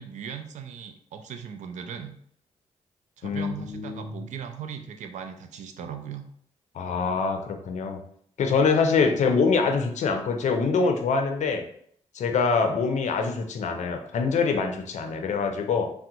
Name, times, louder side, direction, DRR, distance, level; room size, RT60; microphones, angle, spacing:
voice 1, 0.0-2.1 3.2-6.2 9.0-9.1 15.0-15.3, right 7 dB, 85° right, 7 dB, 0.4 m, -38 dB
voice 2, 3.2-4.2 6.7-8.0 8.4-11.6 12.1-15.9, left 5 dB, 75° left, 5 dB, 0.5 m, -24 dB
3.4 x 2.1 x 2.8 m, 0.65 s
cardioid pair, 60°, 12 cm